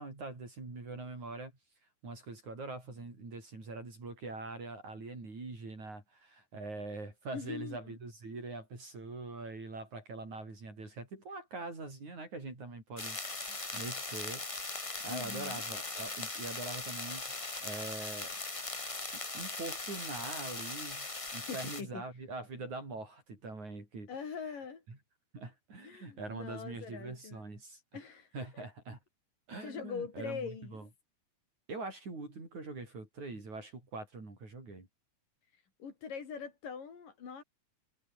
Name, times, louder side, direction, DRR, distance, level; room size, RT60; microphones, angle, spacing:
voice 1, 0.0-1.5 2.0-17.2 17.6-18.3 19.3-24.6 24.9-25.0 25.3-27.8 28.3-29.0 29.5-30.9 31.7-34.9, right 3 dB, 60° right, 9.0 m, -43 dB
voice 2, 7.3-8.0 13.5-13.6 15.1-15.6 21.5-22.0 24.1-24.8 25.8-27.4 27.9-28.3 28.5-28.6 29.6-30.8 35.8-37.4, left 6 dB, 80° left, 5.7 m, -42 dB
sound 1, 13.0-21.8, left 2 dB, 40° left, 0.4 m, -39 dB
omnidirectional pair, 3.8 m